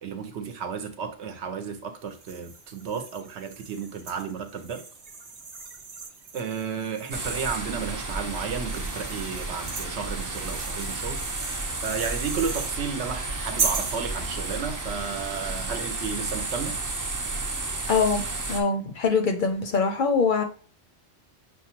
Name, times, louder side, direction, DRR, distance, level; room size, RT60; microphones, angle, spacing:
voice 1, 0.0-4.8 6.3-11.5 11.8-16.8, right 6 dB, 85° right, 1.0 m, -33 dB
sound 1, 2.1-7.7 8.3-12.7 13.6-14.0, right 5 dB, 60° right, 0.9 m, -37 dB
sound 2, 7.1-18.6, right 2 dB, 30° right, 0.3 m, -32 dB
voice 2, 17.9-18.2 18.5-20.4, left 5 dB, 60° left, 0.6 m, -23 dB
6.1 x 2.3 x 2.8 m
omnidirectional pair, 1.1 m